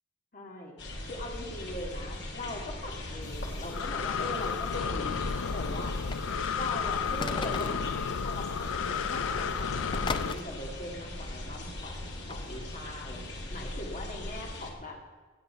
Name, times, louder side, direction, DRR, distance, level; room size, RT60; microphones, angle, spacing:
voice 1, 0.3-0.7 1.0-6.0 6.5-7.9 8.2-15.0, left 1 dB, 40° left, 0 dB, 2.0 m, -41 dB
sound 1, 0.8-14.7, left 1 dB, 60° left, 2.0 m, -40 dB
Breathing, 3.2-10.3, left 6 dB, 85° left, 0.6 m, -32 dB
sound 2, 5.8-6.6 7.2-7.9 8.7-8.8 9.1-9.3 9.9-10.4 12.3-12.4, left 4 dB, 25° left, 0.5 m, -37 dB
16.0 x 8.1 x 5.6 m, 1.3 s
head